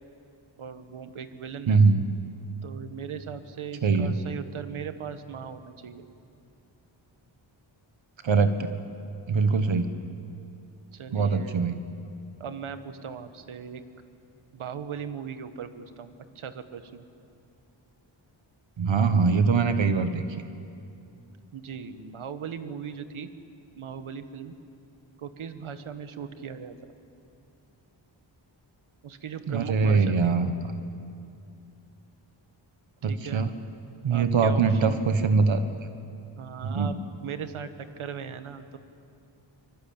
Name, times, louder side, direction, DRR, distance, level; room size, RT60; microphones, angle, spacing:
voice 1, 0.6-1.9 2.6-6.0 10.9-11.6 12.4-13.8 14.5-17.0 21.5-23.3 23.8-24.5 25.2-26.8 29.0-30.4 33.0-33.4 34.1-35.0 36.4-37.0 37.2-38.8, right 7 dB, 85° right, 10 dB, 1.5 m, -38 dB
voice 2, 1.7-2.0 3.8-4.1 8.2-8.7 9.3-9.9 11.1-11.8 18.8-20.2 29.5-30.5 33.0-33.5 34.0-35.6 36.6-36.9, right 4 dB, 70° right, 9 dB, 1.4 m, -22 dB
24.5 x 23.0 x 8.7 m, 2.5 s
wide cardioid pair, 90°, 48 cm